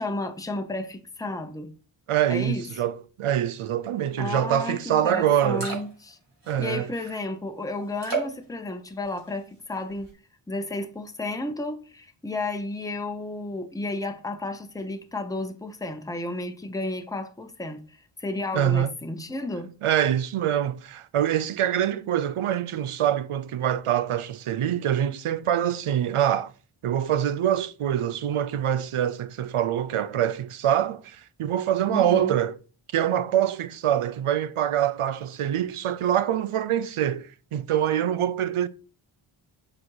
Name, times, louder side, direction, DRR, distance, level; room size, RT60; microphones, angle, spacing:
voice 1, 0.0-1.7 2.3-2.7 4.2-6.2 6.6-10.1 10.5-19.7 31.9-32.4, left 2 dB, 5° left, 0.8 m, -32 dB
voice 2, 2.1-5.7 6.5-6.9 18.5-18.9 19.8-26.5 26.8-32.6 32.9-38.7, right 10 dB, 90° right, 0.6 m, -25 dB
sound 1, 5.0-5.1 5.3-6.1 6.4-7.0 8.0-8.5 9.0-9.5 9.8-10.1, right 4 dB, 55° right, 3.2 m, -33 dB
7.4 x 4.3 x 4.7 m
wide cardioid pair, 65°, 49 cm